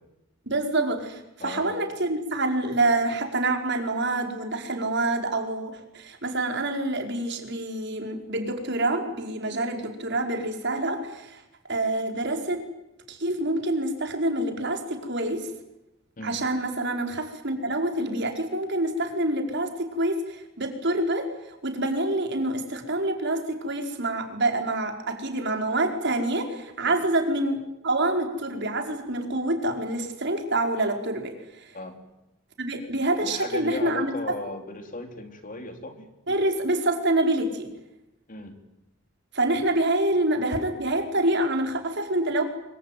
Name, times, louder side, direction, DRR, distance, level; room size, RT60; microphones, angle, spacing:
voice 1, 0.5-11.4 11.7-12.6 13.1-15.5 16.2-31.7 32.6-34.4 36.3-37.7 39.3-42.4, right 2 dB, 60° right, 4 dB, 5.0 m, -27 dB
voice 2, 33.2-36.1 38.3-38.6, left 2 dB, 40° left, 5 dB, 3.8 m, -36 dB
25.5 x 24.0 x 9.4 m, 0.89 s
head